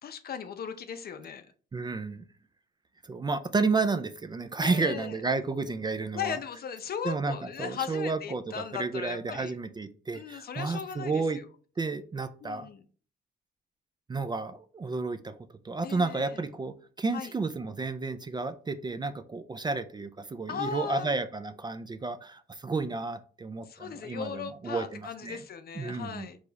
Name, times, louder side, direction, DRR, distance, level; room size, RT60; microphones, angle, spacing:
voice 1, 0.0-1.5 4.6-5.2 6.1-9.5 10.1-11.4 12.4-12.8 15.8-16.4 17.1-17.3 20.5-21.1 23.7-26.4, left 7 dB, 50° left, 9 dB, 0.6 m, -37 dB
voice 2, 1.7-2.2 3.0-6.4 7.0-8.4 8.7-11.4 11.8-12.7 14.1-15.3 15.6-25.4 25.8-26.3, right 3 dB, 20° right, 10 dB, 0.4 m, -31 dB
4.8 x 2.4 x 4.0 m, 0.41 s
cardioid pair, 90°, 20 cm